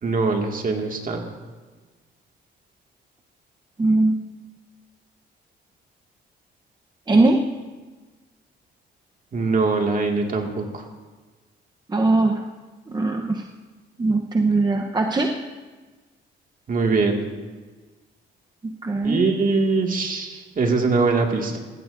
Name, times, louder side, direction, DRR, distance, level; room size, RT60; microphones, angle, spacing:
voice 1, 0.0-1.3 9.3-10.9 16.7-17.2 19.0-21.6, right 4 dB, 45° right, 2 dB, 2.1 m, -22 dB
voice 2, 3.8-4.2 7.1-7.4 11.9-12.4 12.9-13.4 14.0-15.3 18.6-19.2, right 2 dB, 20° right, 2 dB, 0.9 m, -20 dB
19.0 x 15.5 x 2.6 m, 1.3 s
cardioid pair, 90°, 20 cm